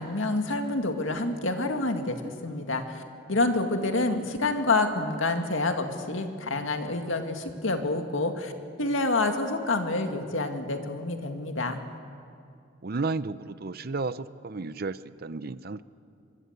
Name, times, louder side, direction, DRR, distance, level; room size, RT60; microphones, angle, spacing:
voice 1, 0.0-3.0 3.3-8.5 8.8-11.8, left 2 dB, 90° left, 5 dB, 2.1 m, -28 dB
voice 2, 12.8-15.8, right 3 dB, 50° right, 15 dB, 0.7 m, -33 dB
25.0 x 22.5 x 8.2 m, 2.4 s
head